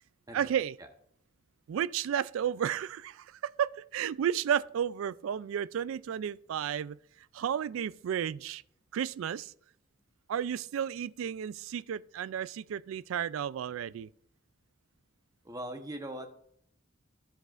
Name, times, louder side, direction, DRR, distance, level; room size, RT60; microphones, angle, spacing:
voice 1, 0.3-0.8 1.7-7.0 7.3-8.6 8.9-9.5 10.3-14.1, right 9 dB, 70° right, 0.3 m, -32 dB
voice 2, 15.4-16.3, right 1 dB, 20° right, 1.0 m, -40 dB
13.0 x 11.5 x 2.5 m
head